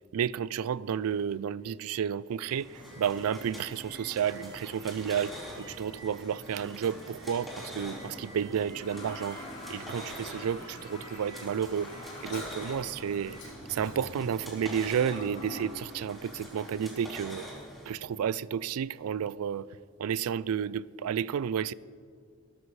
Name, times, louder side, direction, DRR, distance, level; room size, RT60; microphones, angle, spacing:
voice 1, 0.1-9.4 9.7-11.9 12.2-17.5 17.9-19.7 20.0-21.7, right 8 dB, 80° right, 0.4 m, -31 dB
sound 1, 2.4-17.9, equal, ahead, 4.1 m, -46 dB
sound 2, 2.7-13.4, right 2 dB, 55° right, 1.7 m, -51 dB
Toilet flush, 7.6-16.7, left 2 dB, 35° left, 4.3 m, -46 dB
22.0 x 13.0 x 3.2 m
head